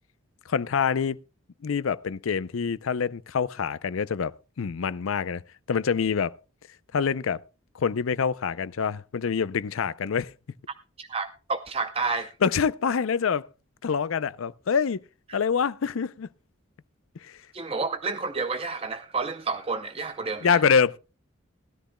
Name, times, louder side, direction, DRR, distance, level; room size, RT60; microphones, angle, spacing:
voice 1, 0.5-1.2 1.6-5.4 5.7-6.3 6.9-7.4 7.7-10.3 12.4-13.5 13.8-15.0 15.3-16.3 17.2-17.4 20.4-21.0, left 6 dB, 85° left, 0.5 m, -26 dB
voice 2, 11.0-12.3 15.3-15.4 17.5-20.6, right 4 dB, 30° right, 0.6 m, -30 dB
19.5 x 13.0 x 2.2 m
head